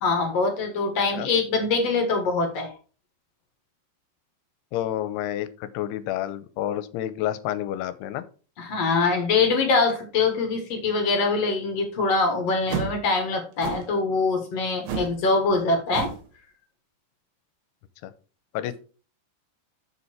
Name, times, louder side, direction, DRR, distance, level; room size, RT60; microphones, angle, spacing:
voice 1, 0.0-2.7 8.6-16.1, left 3 dB, 55° left, 4 dB, 2.0 m, -23 dB
voice 2, 4.7-8.2 18.0-18.1 18.5-18.8, left 12 dB, 85° left, 13 dB, 2.7 m, -29 dB
sound 1, 12.7-13.0 13.6-13.9 14.9-15.2 15.5-15.6 15.9-16.2, right 6 dB, 70° right, 3.3 m, -31 dB
7.1 x 7.0 x 4.4 m, 0.37 s
omnidirectional pair, 4.7 m